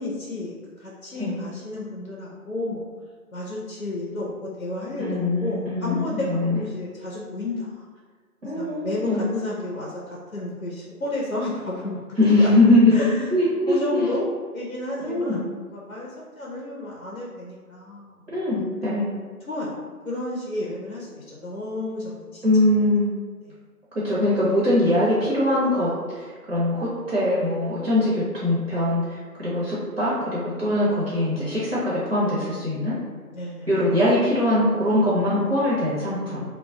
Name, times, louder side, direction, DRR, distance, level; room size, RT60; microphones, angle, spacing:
voice 1, 0.0-2.9 3.3-7.9 8.5-12.5 12.9-13.2 13.7-14.3 14.5-18.4 19.5-19.8 20.0-22.4 23.4-23.5 33.3-33.7, left 2 dB, 60° left, -4 dB, 0.6 m, -32 dB
voice 2, 5.0-6.6 8.4-9.2 12.2-14.1 15.0-15.4 18.3-19.1 22.4-23.1 23.9-33.0 33.7-36.4, left 1 dB, 50° right, -9 dB, 0.8 m, -22 dB
2.2 x 2.0 x 3.6 m, 1.5 s
figure-of-eight pair, 170°, 46 cm